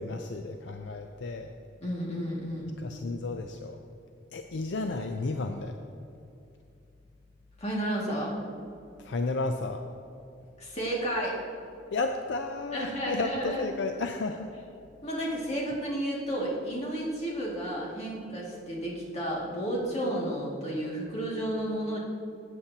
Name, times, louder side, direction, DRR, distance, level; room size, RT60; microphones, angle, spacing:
voice 1, 0.0-1.5 2.8-3.8 4.3-5.8 9.0-9.8 11.9-14.5, left 3 dB, 70° left, 5 dB, 0.5 m, -32 dB
voice 2, 1.8-2.8 7.6-8.4 10.6-11.4 12.7-13.6 15.0-22.0, right 1 dB, 35° left, -4 dB, 2.2 m, -32 dB
14.5 x 8.2 x 2.9 m, 2.6 s
head